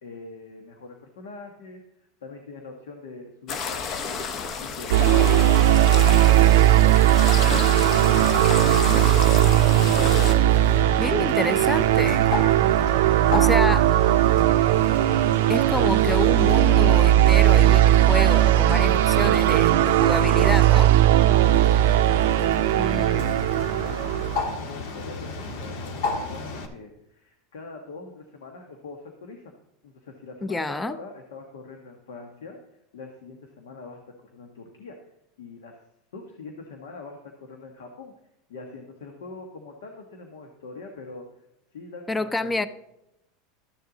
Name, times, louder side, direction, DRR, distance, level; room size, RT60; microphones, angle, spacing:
voice 1, 0.0-6.6 7.2-10.3 10.7-11.4 11.7-12.1 12.5-13.8 14.1-15.4 21.2-22.0 22.3-29.4 29.8-35.0 35.4-35.8 36.1-38.1 38.5-41.4 41.7-42.7, left 3 dB, 85° left, 1.3 m, -42 dB
sound 1, 3.5-10.3, left 5 dB, 45° left, 1.0 m, -31 dB
sound 2, 4.9-24.4, right 13 dB, 75° right, 0.4 m, -18 dB
Bird, 7.9-26.7, left 3 dB, 70° left, 1.5 m, -34 dB
voice 2, 11.0-12.3 13.3-13.8 15.5-20.9 22.8-23.3 30.4-31.0 42.1-42.7, left 2 dB, 10° left, 0.6 m, -28 dB
13.0 x 6.9 x 3.9 m
supercardioid pair, 110°, 0 cm